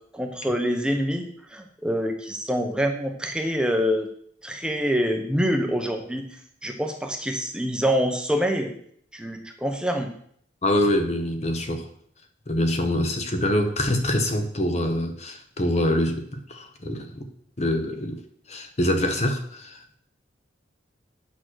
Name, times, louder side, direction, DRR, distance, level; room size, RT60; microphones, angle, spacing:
voice 1, 0.1-4.1 4.4-6.2 6.6-8.7 9.1-10.1, equal, 5° right, 0.9 m, -25 dB
voice 2, 10.6-11.9 12.5-17.3 17.6-18.2 18.5-20.0, left 1 dB, 35° left, 1.0 m, -25 dB
8.8 x 6.3 x 6.3 m
head